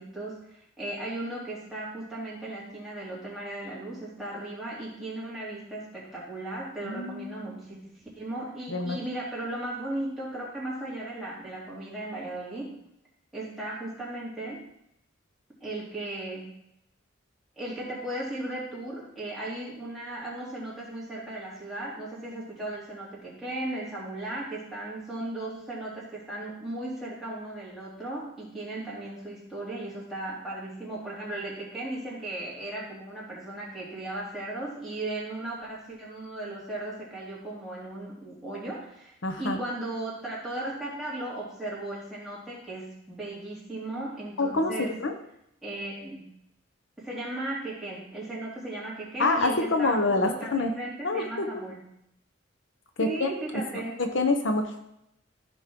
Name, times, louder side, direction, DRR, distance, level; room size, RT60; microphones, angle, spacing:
voice 1, 0.0-12.7 13.3-14.6 15.6-16.6 17.6-44.9 45.6-46.2 47.0-51.9 53.0-54.0, right 1 dB, ahead, -8 dB, 3.2 m, -36 dB
voice 2, 6.8-7.3 8.7-9.0 39.2-39.6 44.4-45.1 49.2-50.7 51.0-51.5 53.0-53.3 54.0-54.9, left 2 dB, 75° left, 5 dB, 0.9 m, -26 dB
14.0 x 5.2 x 3.7 m, 0.79 s
head